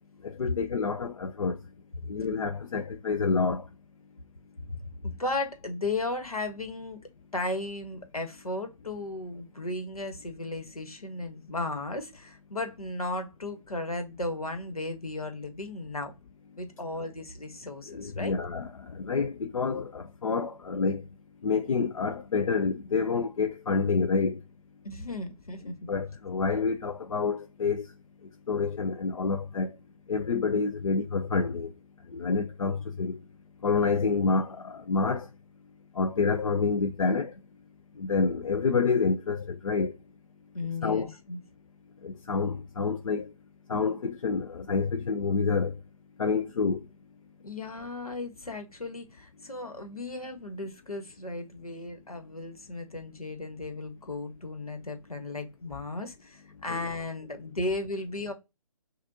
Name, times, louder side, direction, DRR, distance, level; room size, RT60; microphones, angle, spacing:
voice 1, 0.2-1.6 2.1-3.6 17.9-21.0 21.4-24.4 25.9-27.8 28.5-29.7 30.1-31.7 32.1-33.2 33.6-35.3 36.0-37.3 38.0-39.9 40.8-41.1 42.0-43.3 43.7-45.7 46.2-46.8 56.7-56.9, left 4 dB, 65° left, 0.5 m, -28 dB
voice 2, 5.0-7.0 7.3-16.1 16.6-18.3 24.8-25.8 40.5-41.4 47.4-58.3, left 2 dB, 90° left, 1.4 m, -35 dB
6.2 x 2.5 x 2.7 m
figure-of-eight pair, 140°, 18 cm